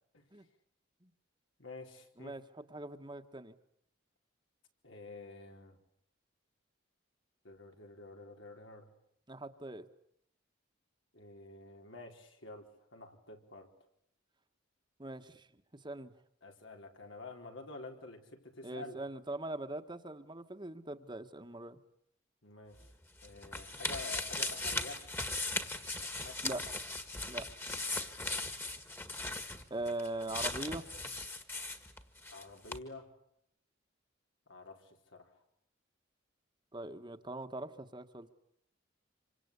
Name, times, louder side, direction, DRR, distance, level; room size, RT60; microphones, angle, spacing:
voice 1, 1.6-2.4 4.8-5.8 7.4-8.9 11.1-13.7 16.4-19.0 22.4-22.8 23.2-25.0 26.0-26.4 27.9-28.4 32.3-33.1 34.5-35.4, left 3 dB, 85° left, 3 dB, 4.3 m, -49 dB
voice 2, 2.2-3.5 9.3-9.8 15.0-15.5 15.8-16.1 18.6-21.8 26.4-26.6 27.3-27.5 29.7-30.8 36.7-38.3, right 2 dB, 25° right, 8 dB, 1.4 m, -41 dB
sound 1, 22.8-32.4 32.7-32.8, left 2 dB, 10° left, 1.7 m, -38 dB
27.0 x 25.5 x 8.3 m, 0.73 s
head